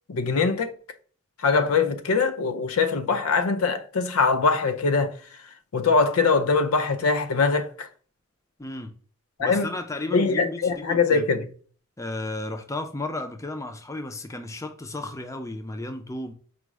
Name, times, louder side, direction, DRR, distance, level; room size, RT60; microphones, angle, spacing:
voice 1, 0.1-0.7 1.4-5.1 5.7-7.9 9.4-9.7 10.1-11.5, left 4 dB, 90° left, 0.5 m, -22 dB
voice 2, 8.6-8.9 9.4-11.3 12.0-16.3, left 2 dB, 15° left, 0.4 m, -34 dB
5.0 x 2.0 x 4.6 m
head